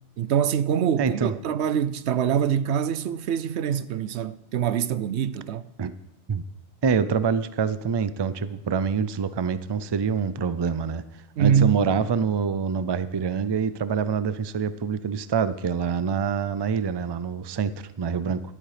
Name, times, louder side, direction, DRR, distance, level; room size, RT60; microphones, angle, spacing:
voice 1, 0.2-5.6 11.4-11.8, right 8 dB, 70° right, 0.9 m, -24 dB
voice 2, 1.0-1.3 5.8-5.9 6.3-6.4 6.8-11.0 11.4-18.4, right 6 dB, 40° right, 0.4 m, -26 dB
14.0 x 11.0 x 5.0 m
omnidirectional pair, 1.2 m